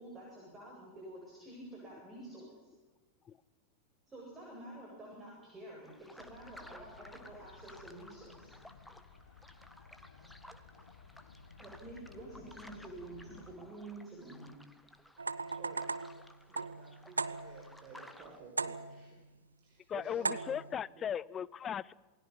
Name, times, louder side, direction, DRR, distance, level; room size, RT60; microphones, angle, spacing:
voice 1, 0.0-2.7 4.1-8.5 11.6-14.5, right 1 dB, 20° right, -3 dB, 8.0 m, -49 dB
sound 1, 5.8-18.4, left 1 dB, 5° left, 1.8 m, -57 dB
sound 2, 6.2-13.5, left 5 dB, 70° left, 1.7 m, -57 dB
sound 3, 15.2-17.8 18.6-19.2 20.2-20.8, right 4 dB, 80° right, 0.8 m, -38 dB
voice 2, 16.5-21.1, right 5 dB, 40° right, 0 dB, 5.0 m, -54 dB
voice 3, 19.9-21.9, left 8 dB, 25° left, 22 dB, 0.6 m, -37 dB
28.0 x 20.5 x 5.9 m, 1.2 s
figure-of-eight pair, 90°, 0 cm